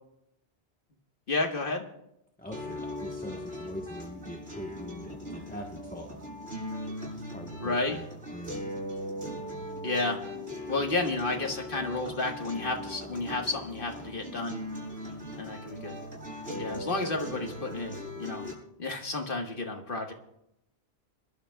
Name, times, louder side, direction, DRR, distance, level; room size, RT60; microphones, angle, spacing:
voice 1, 1.3-1.9 7.6-8.0 9.8-10.2 10.7-14.6 15.4-16.0 16.6-18.5 18.8-20.1, left 3 dB, 55° left, 3 dB, 1.7 m, -31 dB
voice 2, 2.4-6.1 7.3-8.0 8.3-8.6, equal, 10° left, 0 dB, 1.1 m, -42 dB
sound 1, 2.5-18.5, left 1 dB, 75° right, 7.1 m, -39 dB
27.0 x 12.0 x 2.3 m, 0.82 s
omnidirectional pair, 1.1 m